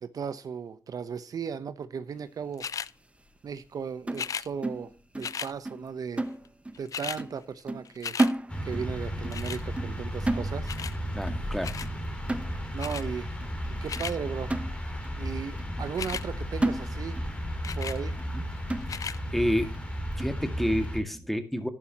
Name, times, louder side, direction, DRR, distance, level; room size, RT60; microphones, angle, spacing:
voice 1, 0.0-2.7 3.4-6.2 6.8-8.2 8.6-10.7 12.7-13.3 13.8-14.5 15.2-17.2 17.8-18.2, right 6 dB, 65° right, 12 dB, 0.9 m, -36 dB
sound 1, 2.6-2.9 4.1-4.5 5.2-5.5 6.4-6.5 6.7-7.2 7.6-8.3 9.3-9.6 10.7-11.0 11.6-11.9 12.8-13.0 13.6-14.2 15.9-16.2 17.6-18.0 18.8-19.2 19.8-19.9, left 7 dB, 55° left, 0.4 m, -35 dB
sound 2, 4.1-5.4 5.7-5.9 6.2-6.9 7.2-7.4 7.7-8.9 9.2-9.5 9.8-10.0 10.3-10.9 11.3-11.5 11.8-12.0 12.3-12.9 13.4-13.5 14.0-14.1 14.5-15.2 15.6-15.7 16.1-16.3 16.6-17.3 17.7-17.8 18.2-18.3 18.7-19.2 19.7-19.8 20.2-20.4, right 2 dB, 20° right, 0.9 m, -32 dB
sound 3, 8.5-21.0, equal, 15° left, 3.2 m, -34 dB
voice 2, 11.1-11.7 15.7-15.8 18.3-18.4 19.3-19.7 20.2-21.7, equal, ahead, 9 dB, 1.9 m, -29 dB
11.5 x 11.0 x 2.9 m, 0.34 s
cardioid pair, 65°, 7 cm